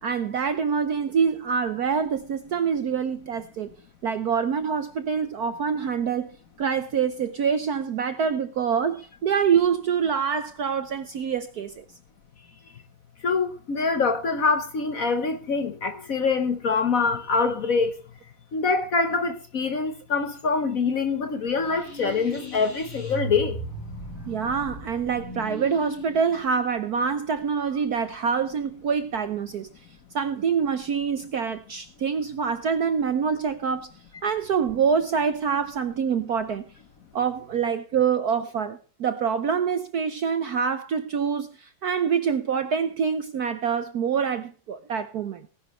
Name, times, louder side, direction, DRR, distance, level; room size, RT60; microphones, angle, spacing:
voice 1, 0.0-3.7 4.0-11.8 24.3-29.7 30.1-33.9 34.2-36.7 37.1-45.5, right 6 dB, 60° right, 1.0 m, -26 dB
voice 2, 13.2-17.9 18.5-23.6, left 4 dB, 50° left, 1.2 m, -24 dB
sound 1, 21.5-28.2, right 1 dB, 85° left, 8.1 m, -38 dB
18.5 x 10.5 x 3.1 m
omnidirectional pair, 2.3 m